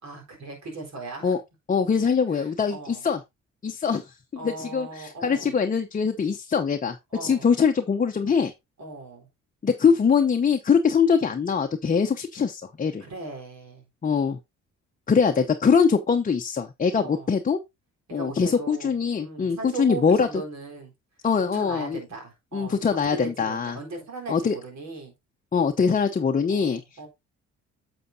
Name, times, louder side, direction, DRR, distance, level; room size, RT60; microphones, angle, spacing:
voice 1, 0.0-1.4 2.3-3.1 4.4-5.6 7.1-7.5 8.8-9.3 13.0-13.9 16.9-17.4 18.1-19.0 19.2-20.9 21.5-25.1 26.5-27.1, right 3 dB, 65° right, 4.0 m, -38 dB
voice 2, 1.7-3.2 3.6-4.1 4.4-7.0 7.2-8.5 9.6-13.0 14.0-14.4 15.1-17.6 18.1-20.3 21.2-22.0 22.5-23.8 24.3-24.5 25.5-26.8, left 6 dB, 25° left, 0.7 m, -23 dB
9.3 x 6.9 x 2.7 m
cardioid pair, 90°, 30 cm